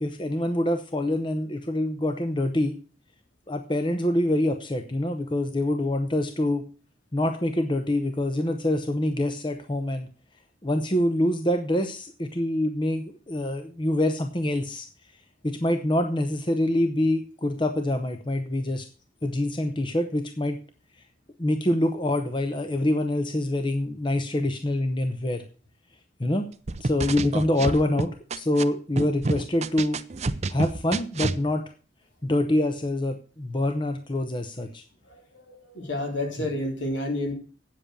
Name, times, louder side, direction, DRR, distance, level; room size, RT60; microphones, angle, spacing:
voice 1, 0.0-2.8 3.5-6.6 7.1-10.1 10.6-14.9 15.4-18.8 19.2-20.6 21.4-25.4 26.2-26.5 26.8-30.0 30.5-31.6 32.2-34.8 36.4-36.5, left 1 dB, 25° left, 7 dB, 0.8 m, -25 dB
sound 1, 26.7-28.6 29.0-31.4, right 3 dB, 35° right, 0.6 m, -28 dB
voice 2, 35.5-37.3, left 1 dB, 70° left, 3 dB, 3.1 m, -29 dB
8.9 x 7.7 x 6.7 m, 0.39 s
head